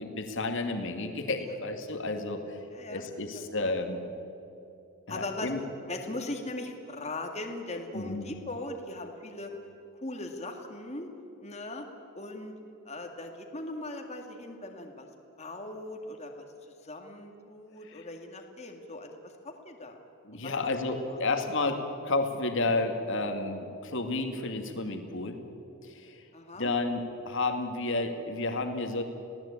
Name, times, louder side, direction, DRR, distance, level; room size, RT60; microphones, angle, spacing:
voice 1, 0.0-2.6 2.9-4.0 5.1-5.6 7.9-8.3 17.8-18.1 20.2-25.4 25.8-26.2 26.6-29.0, left 2 dB, 60° left, 5 dB, 2.5 m, -31 dB
voice 2, 2.7-3.1 3.3-3.4 5.1-5.5 5.9-9.5 10.0-11.1 11.4-11.9 12.1-12.5 12.9-15.1 15.4-16.4 16.8-20.0 20.3-20.5 21.1-21.2 26.3-26.7, left 2 dB, 30° left, 3 dB, 2.2 m, -39 dB
27.5 x 18.0 x 8.7 m, 2.8 s
head